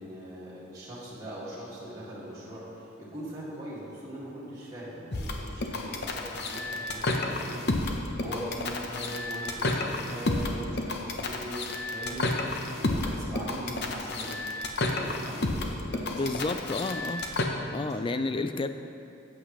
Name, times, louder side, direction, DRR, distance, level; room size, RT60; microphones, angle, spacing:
voice 1, 0.0-11.7 11.9-14.3 14.8-16.2 18.1-18.4, right 1 dB, 20° right, -10 dB, 2.1 m, -41 dB
sound 1, 5.1-17.4, left 2 dB, 55° left, 0.8 m, -31 dB
voice 2, 16.1-17.2 17.7-18.7, left 3 dB, 25° left, 10 dB, 0.3 m, -30 dB
14.0 x 8.2 x 3.2 m, 2.6 s
head